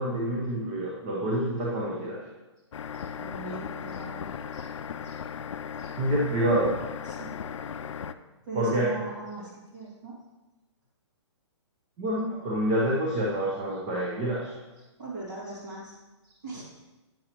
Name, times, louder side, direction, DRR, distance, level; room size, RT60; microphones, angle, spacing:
voice 1, 0.0-2.2 6.0-6.8 8.5-8.9 12.0-14.5, right 1 dB, 15° right, -4 dB, 0.7 m, -27 dB
sound 1, 2.7-8.1, left 7 dB, 85° left, 0.4 m, -37 dB
voice 2, 2.9-4.7 5.0-5.2 5.8-5.9 7.0-7.4 8.4-10.2 12.2-12.4 14.8-16.0 16.2-16.6, right 3 dB, 40° right, -7 dB, 2.3 m, -40 dB
8.6 x 6.4 x 3.0 m, 1.1 s
hypercardioid pair, 180°, 15 cm